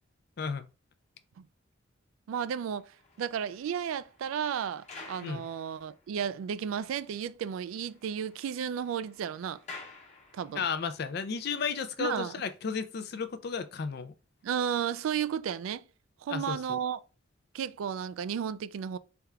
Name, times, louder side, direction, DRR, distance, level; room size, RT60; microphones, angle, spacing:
voice 1, 0.4-0.7 5.2-5.4 10.5-14.1 16.3-16.8, left 5 dB, 50° left, 0.4 m, -33 dB
voice 2, 2.3-2.9 3.2-9.6 10.3-10.6 12.0-12.3 14.4-15.8 16.2-17.0 17.5-19.0, right 8 dB, 85° right, 0.3 m, -33 dB
sound 1, 2.7-6.4 6.7-6.8 7.2-7.3 7.6-10.8 11.5-11.7, left 3 dB, 35° left, 1.0 m, -51 dB
4.3 x 3.4 x 2.3 m
head